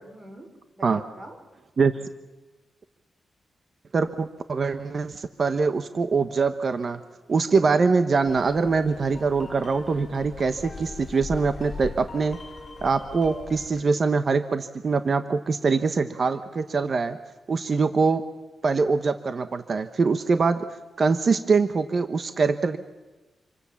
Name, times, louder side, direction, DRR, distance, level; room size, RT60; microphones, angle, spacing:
voice 1, 0.0-1.4, right 1 dB, 25° right, 5 dB, 4.8 m, -45 dB
voice 2, 3.9-7.0 7.3-12.4 12.8-17.2 17.5-18.2 18.6-20.7 21.0-22.8, right 4 dB, 40° right, 10 dB, 1.0 m, -23 dB
sound 1, 8.2-13.8, left 3 dB, 30° left, 5.7 m, -40 dB
27.5 x 24.0 x 7.2 m, 1.2 s
wide cardioid pair, 145°, 0 cm